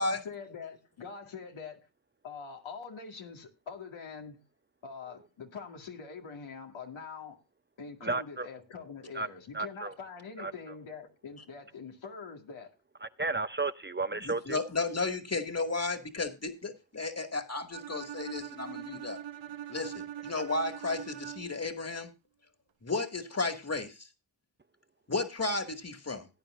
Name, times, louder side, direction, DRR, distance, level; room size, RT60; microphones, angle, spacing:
voice 1, 0.0-1.9 2.2-4.4 4.8-7.4 7.8-12.7, left 5 dB, 85° left, 2.2 m, -44 dB
voice 2, 8.0-8.5 9.1-9.3 9.5-9.9 10.4-10.5 13.2-14.6, right 3 dB, 25° right, 0.6 m, -32 dB
voice 3, 14.2-19.2 19.7-22.1 22.8-24.1 25.1-26.3, left 3 dB, 35° left, 2.2 m, -33 dB
Bowed string instrument, 17.7-21.7, right 11 dB, 75° right, 0.9 m, -42 dB
17.5 x 9.4 x 2.5 m
cardioid pair, 45°, 46 cm